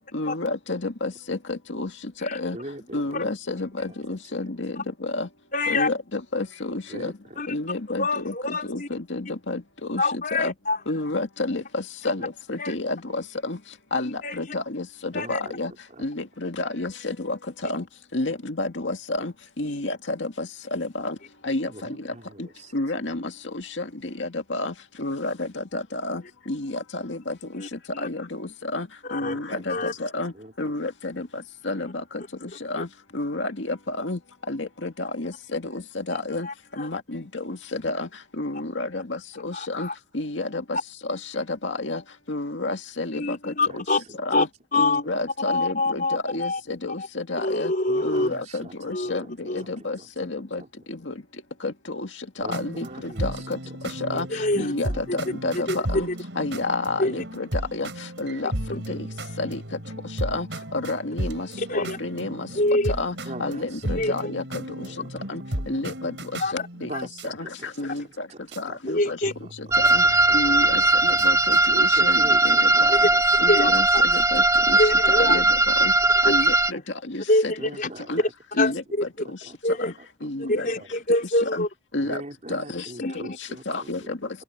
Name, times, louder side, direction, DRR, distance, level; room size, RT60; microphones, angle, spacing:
voice 1, 0.1-1.9 2.2-2.6 2.9-5.3 5.7-7.1 7.5-10.5 10.9-13.6 13.9-15.7 16.0-17.4 17.6-17.8 18.1-21.1 21.4-21.7 22.4-22.5 22.7-23.8 24.2-26.2 26.5-27.3 28.0-30.3 30.6-31.3 31.6-32.2 32.6-32.9 33.1-34.2 34.5-36.5 36.8-38.1 38.4-39.9 40.1-40.8 41.1-42.0 42.3-43.8 44.2-44.5 44.8-47.7 48.0-50.6 50.9-51.1 51.6-52.1 52.4-53.6 54.0-54.3 54.6-56.1 56.4-57.9 58.2-59.0 59.4-59.6 60.2-60.5 60.7-61.5 61.7-62.5 63.0-64.9 65.3-65.4 65.7-66.9 67.2-68.3 68.6-69.2 69.6-70.0 70.3-72.9 73.4-74.8 75.2-75.9 76.3-76.8 77.1-77.5 78.1-78.2 78.6-79.1 79.8-79.9 80.2-80.7 81.4-81.7 81.9-82.2 82.5-82.9 83.1-83.3 83.7-84.2, left 2 dB, 75° left, 2.1 m, -30 dB
voice 2, 2.5-3.3 6.9-7.4 12.2-12.3 15.1-15.6 15.9-16.1 21.7-22.7 29.2-29.6 30.3-30.7 43.7-43.8 44.1-44.2 47.9-49.3 49.6-50.3 50.6-50.7 52.4-53.4 54.0-54.1 57.0-57.2 63.3-64.0 64.7-65.1 66.8-67.9 68.3-68.4 68.7-68.8 69.0-69.1 69.8-70.0 70.4-70.9 71.3-71.4 71.7-73.7 74.0-74.1 74.4-74.8 76.2-76.4 77.6-78.3 78.7-78.8 79.2-80.9 82.0-84.3, right 1 dB, 40° right, 3.9 m, -42 dB
voice 3, 5.5-5.9 7.4-7.5 8.0-8.9 10.0-10.8 12.6-12.7 14.0-14.4 15.1-15.4 27.6-27.7 27.9-28.1 29.1-29.3 29.7-29.9 36.1-36.9 43.1-44.0 44.3-44.5 44.7-45.0 45.4-46.6 47.4-48.3 48.9-49.1 49.5-49.6 54.3-54.7 55.7-55.8 57.0-57.1 61.6-62.0 62.6-62.9 64.0-64.3 66.4-66.5 66.9-67.0 68.9-69.3 72.9-73.1 73.5-74.0 74.8-75.4 76.2-76.4 76.7-76.8 77.3-77.9 78.6-78.7 79.6-79.9 80.5-81.7 83.0-83.2, left 2 dB, 45° left, 4.9 m, -25 dB
sound 1, 52.4-67.3 68.2-68.3 68.5-68.6 69.2-71.6, right 1 dB, 75° right, 4.3 m, -35 dB
sound 2, 69.7-76.7, right 2 dB, 15° right, 0.7 m, -19 dB
open air
head